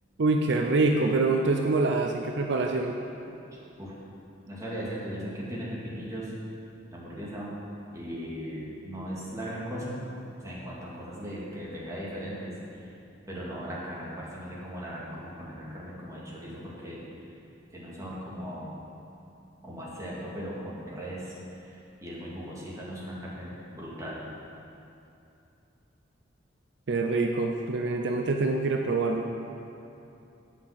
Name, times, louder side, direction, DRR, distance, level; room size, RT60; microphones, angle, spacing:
voice 1, 0.2-3.0 26.9-29.3, right 3 dB, 65° right, 3 dB, 0.6 m, -25 dB
voice 2, 4.5-6.3 6.9-7.6 7.9-10.1 10.4-12.5 12.8-12.9 13.3-17.0 17.7-18.7 19.6-21.3 21.7-24.2, equal, 20° right, -6 dB, 2.2 m, -38 dB
9.1 x 5.7 x 7.9 m, 2.7 s
head